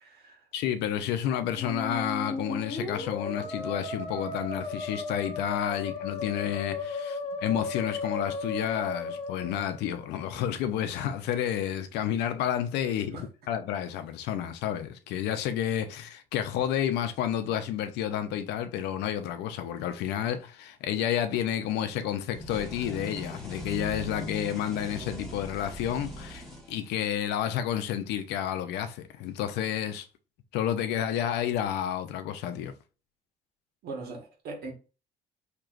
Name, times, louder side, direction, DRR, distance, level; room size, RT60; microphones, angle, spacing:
voice 1, 0.0-0.4 13.1-13.3 33.8-34.7, right 3 dB, 70° right, 1.5 m, -40 dB
voice 2, 0.5-30.1 30.5-32.7, left 10 dB, 85° left, 0.6 m, -30 dB
Musical instrument, 1.5-10.3, left 3 dB, 35° left, 1.1 m, -35 dB
sound 1, 22.3-27.2, equal, ahead, 1.4 m, -40 dB
4.5 x 2.9 x 2.5 m
cardioid pair, 110°, 17 cm